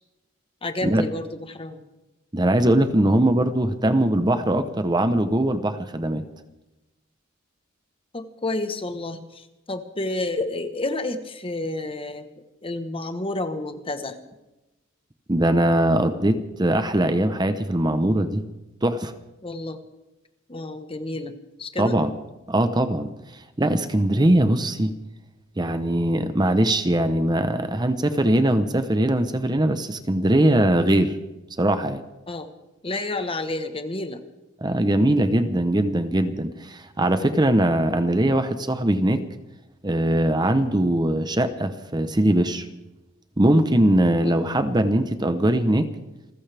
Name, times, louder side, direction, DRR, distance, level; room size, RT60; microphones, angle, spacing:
voice 1, 0.6-1.8 8.1-12.3 12.6-14.2 19.4-19.8 20.5-22.0 32.3-32.5 32.8-34.2 44.2-44.4 44.8-45.1, left 2 dB, 25° left, 8 dB, 1.2 m, -30 dB
voice 2, 2.3-6.2 15.3-18.4 18.8-19.1 21.8-22.1 22.5-24.9 25.6-31.2 31.6-32.0 34.6-39.2 39.8-42.7 43.4-45.9, right 1 dB, 20° right, 10 dB, 0.9 m, -21 dB
28.0 x 15.0 x 3.5 m, 0.99 s
head